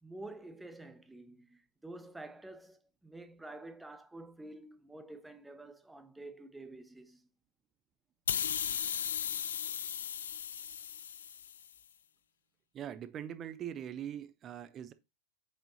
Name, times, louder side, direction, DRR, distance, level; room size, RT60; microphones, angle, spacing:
voice 1, 0.0-7.3, right 2 dB, 5° right, 1.0 m, -49 dB
sound 1, 8.3-11.7, left 8 dB, 70° left, 0.5 m, -36 dB
voice 2, 12.7-14.9, right 10 dB, 30° right, 0.8 m, -42 dB
7.9 x 6.4 x 2.9 m
figure-of-eight pair, 95°, 0 cm